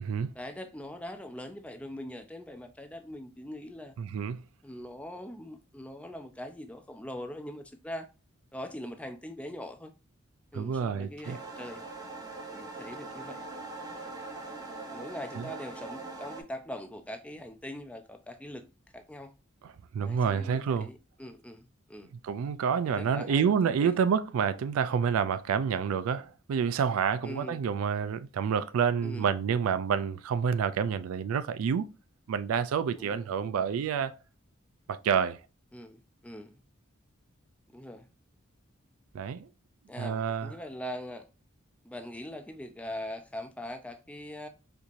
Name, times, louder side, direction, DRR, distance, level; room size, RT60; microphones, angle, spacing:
voice 1, 0.3-4.0 4.6-8.1 8.5-9.9 10.5-11.9 12.5-13.4 14.9-18.6 18.9-19.3 20.0-22.1 22.8-23.9 27.2-27.6 29.0-29.3 32.9-33.3 35.7-36.6 37.7-38.1 39.9-41.3 41.8-44.5, left 1 dB, 5° left, 0.4 m, -42 dB
voice 2, 4.0-4.4 10.5-11.4 15.4-15.5 19.6-20.9 22.2-31.9 32.3-34.1 34.9-35.4 39.1-39.5 40.0-40.5, right 7 dB, 90° right, 0.3 m, -28 dB
sound 1, 11.2-16.4, right 3 dB, 20° right, 0.8 m, -42 dB
4.5 x 2.7 x 2.4 m
head